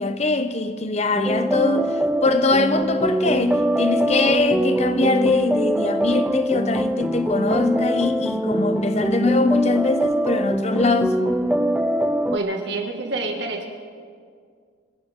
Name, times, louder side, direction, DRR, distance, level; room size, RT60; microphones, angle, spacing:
voice 1, 0.0-1.9 2.2-11.2, left 3 dB, 35° left, 0.8 m, -22 dB
sound 1, 1.1-12.4, right 1 dB, 5° right, 0.4 m, -23 dB
voice 2, 12.3-13.7, right 2 dB, 60° right, 2.1 m, -27 dB
29.0 x 12.5 x 3.8 m
head